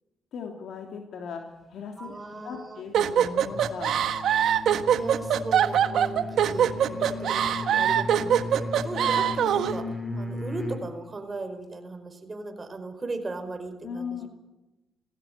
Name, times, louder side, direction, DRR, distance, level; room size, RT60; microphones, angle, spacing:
voice 1, 0.3-4.0 13.8-14.3, left 6 dB, 70° left, 2 dB, 3.1 m, -38 dB
voice 2, 2.0-2.8 4.9-14.3, right 3 dB, 25° right, 6 dB, 5.1 m, -37 dB
sound 1, 2.9-9.8, right 9 dB, 70° right, 1.4 m, -23 dB
sound 2, 3.5-10.9, left 2 dB, 10° left, 4.5 m, -36 dB
19.5 x 15.5 x 9.5 m, 0.99 s
cardioid pair, 90°, 0 cm